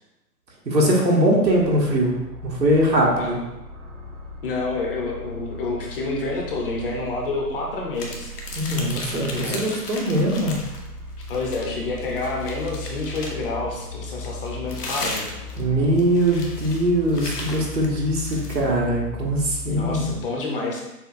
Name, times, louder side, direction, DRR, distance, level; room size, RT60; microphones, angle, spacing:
voice 1, 0.6-2.1 2.4-3.4 8.5-10.6 15.6-20.0, right 1 dB, 85° right, -3 dB, 1.5 m, -21 dB
sound 1, 1.4-20.2, left 2 dB, 5° right, 0.5 m, -38 dB
voice 2, 4.4-8.3 9.3-9.7 11.3-15.4 19.6-20.8, left 3 dB, 35° left, -1 dB, 0.8 m, -28 dB
sound 2, 7.9-10.9 11.2-13.5 14.2-18.6, left 2 dB, 70° left, 1.1 m, -35 dB
6.7 x 2.3 x 2.6 m, 0.96 s
figure-of-eight pair, 130°, 49 cm